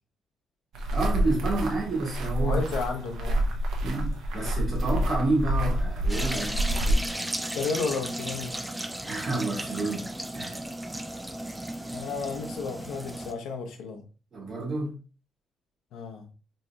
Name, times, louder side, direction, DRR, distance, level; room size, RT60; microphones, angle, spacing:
sound 1, 0.7-7.0, right 1 dB, 70° right, 0.7 m, -28 dB
voice 1, 0.9-2.6 3.8-7.0 9.0-10.6 14.3-15.0, right 2 dB, 35° right, 1.9 m, -30 dB
voice 2, 2.4-3.5 7.0-8.6 11.9-14.0 15.9-16.3, left 4 dB, 80° left, 0.7 m, -33 dB
sound 2, 6.1-13.3, right 1 dB, 5° right, 0.3 m, -35 dB
3.8 x 3.1 x 2.3 m
cardioid pair, 165°, 0 cm